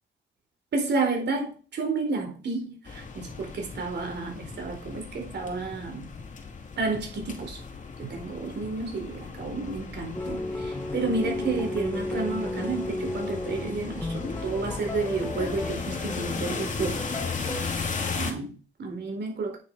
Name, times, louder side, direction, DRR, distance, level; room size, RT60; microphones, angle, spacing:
voice 1, 0.7-6.1 6.8-7.6 8.0-17.0 18.1-19.6, right 3 dB, 60° right, 3 dB, 4.1 m, -31 dB
sound 1, 2.9-18.3, left 4 dB, 40° left, 2.5 m, -36 dB
sound 2, 10.1-17.6, left 2 dB, 10° left, 2.2 m, -34 dB
9.0 x 7.2 x 5.5 m, 0.36 s
cardioid pair, 90°, 20 cm